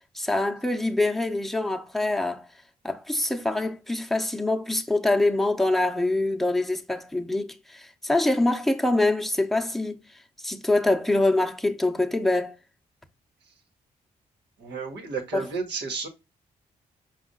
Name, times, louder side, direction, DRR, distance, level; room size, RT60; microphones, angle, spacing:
voice 1, 0.1-2.4 2.8-10.0 10.4-12.5 15.3-15.5, left 2 dB, ahead, 0.7 m, -25 dB
voice 2, 14.6-16.1, right 4 dB, 75° right, 1.2 m, -32 dB
5.2 x 2.4 x 3.8 m
supercardioid pair, 45°, 18 cm